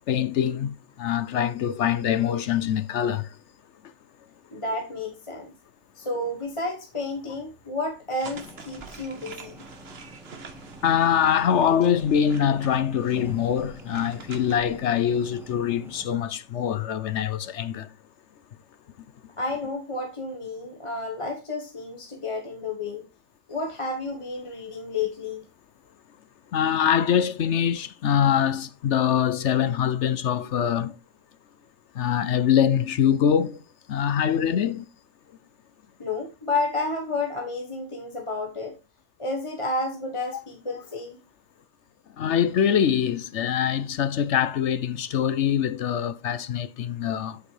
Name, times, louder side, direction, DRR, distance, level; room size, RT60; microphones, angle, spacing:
voice 1, 0.1-3.4 10.8-17.9 26.5-31.0 31.9-33.6 33.9-34.9 42.2-47.4, left 9 dB, 60° left, 0.8 m, -24 dB
voice 2, 4.5-5.5 5.9-9.7 19.4-23.1 23.5-25.5 36.0-38.8 39.2-41.2, left 2 dB, 25° left, 1.2 m, -31 dB
sound 1, 8.2-16.1, right 1 dB, ahead, 1.4 m, -46 dB
sound 2, 8.2-14.6, right 5 dB, 45° right, 1.2 m, -45 dB
8.7 x 8.0 x 3.2 m
omnidirectional pair, 1.5 m